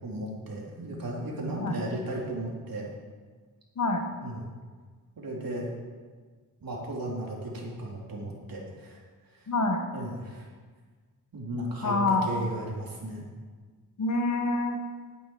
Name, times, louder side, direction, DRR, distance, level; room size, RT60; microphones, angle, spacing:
voice 1, 0.0-2.9 4.2-4.4 5.2-5.7 6.6-9.0 9.9-10.4 11.3-13.3, right 1 dB, 60° right, -3 dB, 3.6 m, -35 dB
voice 2, 9.5-9.8 11.8-12.3 14.0-14.8, left 3 dB, 50° left, 4 dB, 1.5 m, -26 dB
9.3 x 8.7 x 9.3 m, 1.5 s
wide cardioid pair, 140°, 39 cm